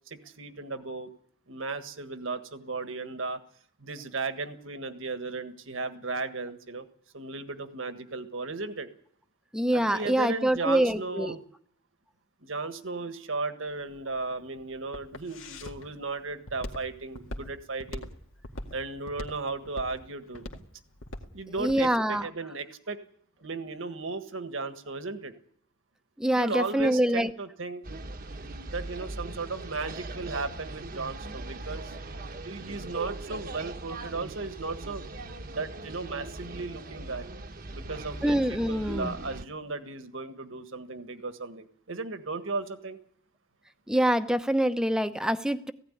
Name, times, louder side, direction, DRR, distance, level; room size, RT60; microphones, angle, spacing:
voice 1, 0.1-1.1 1.5-3.4 3.8-6.8 7.1-8.9 9.7-11.4 12.4-18.1 18.7-20.5 21.3-23.0 23.4-25.3 26.3-27.8 28.7-31.9 32.4-35.0 35.5-37.3 37.7-43.0, right 3 dB, 70° right, 9 dB, 1.6 m, -35 dB
voice 2, 9.5-11.3 21.6-22.3 26.2-27.3 38.2-39.1 43.9-45.7, right 1 dB, 5° right, 9 dB, 0.8 m, -25 dB
Walk footsteps, 13.7-21.8, left 1 dB, 75° left, 2.1 m, -41 dB
sound 1, 27.8-39.4, right 2 dB, 45° right, 1.1 m, -40 dB
17.5 x 16.0 x 9.9 m, 0.64 s
head